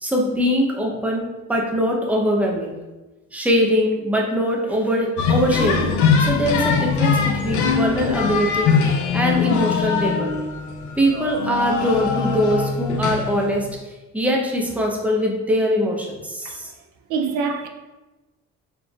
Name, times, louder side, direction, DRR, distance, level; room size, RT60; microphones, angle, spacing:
voice 1, 0.0-2.7 3.3-8.7 9.1-10.3 10.9-16.7, equal, 5° right, 0.7 m, -22 dB
sound 1, 5.2-13.8, left 5 dB, 80° left, 0.5 m, -22 dB
voice 2, 17.1-17.7, right 5 dB, 85° right, 0.5 m, -24 dB
4.1 x 3.3 x 2.3 m
cardioid pair, 90°, 30 cm